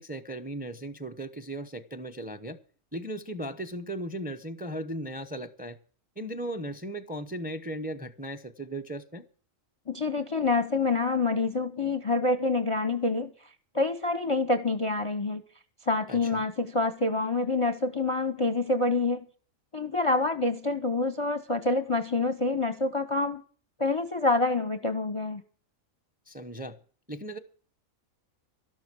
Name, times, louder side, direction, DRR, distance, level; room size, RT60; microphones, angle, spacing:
voice 1, 0.0-2.6 2.9-5.8 6.2-9.2 16.1-16.4 26.3-26.8 27.1-27.4, right 1 dB, 10° right, 0.6 m, -37 dB
voice 2, 9.9-13.3 13.7-15.4 15.9-19.2 19.7-23.4 23.8-25.4, left 3 dB, 30° left, 0.6 m, -27 dB
12.5 x 12.0 x 6.2 m
omnidirectional pair, 1.4 m